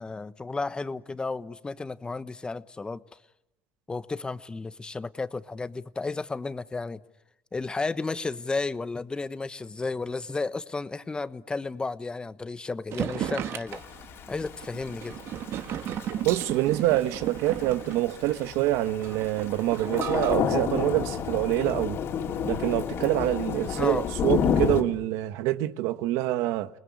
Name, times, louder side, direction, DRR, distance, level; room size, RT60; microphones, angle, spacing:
voice 1, 0.0-3.0 3.9-7.0 7.5-13.8 14.3-15.2 23.7-24.1, left 3 dB, 20° left, 1.1 m, -33 dB
sound 1, 12.9-20.4, right 10 dB, 55° right, 1.6 m, -35 dB
Thunder / Rain, 13.7-24.8, left 7 dB, 55° left, 3.5 m, -30 dB
voice 2, 16.2-22.0 22.5-26.7, right 15 dB, 80° right, 1.2 m, -26 dB
29.0 x 20.5 x 9.6 m
supercardioid pair, 105°, 5 cm